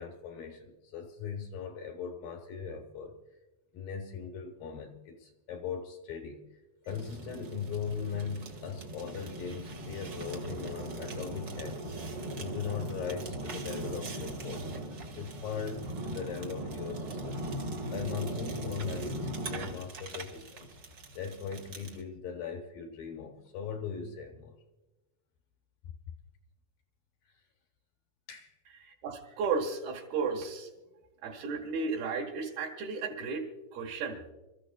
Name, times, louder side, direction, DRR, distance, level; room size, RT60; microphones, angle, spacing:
voice 1, 0.0-3.2 3.7-6.4 6.9-11.9 12.4-14.8 15.1-17.5 17.9-20.8 21.2-24.5 25.8-25.9 28.3-28.5, left 6 dB, 70° left, 2.4 m, -39 dB
Fire, 6.9-22.0, right 1 dB, 50° right, 1.4 m, -39 dB
voice 2, 28.8-30.7 31.2-34.3, right 5 dB, 70° right, 3.1 m, -34 dB
28.5 x 14.0 x 2.3 m
omnidirectional pair, 4.8 m